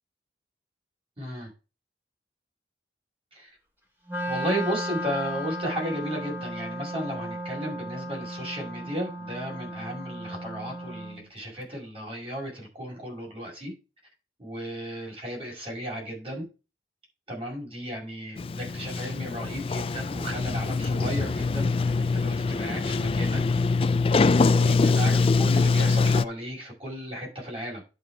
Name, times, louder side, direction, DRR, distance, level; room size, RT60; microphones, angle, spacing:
voice 1, 1.2-1.5 3.3-3.5 4.3-13.7 14.4-16.4 17.3-23.4 24.4-27.8, equal, 30° right, 5.7 m, -34 dB
Wind instrument woodwind instrument, 4.1-11.2, equal, 10° right, 2.4 m, -35 dB
Sliding door, 18.4-26.2, left 4 dB, 30° left, 0.3 m, -23 dB
11.0 x 5.4 x 3.6 m
head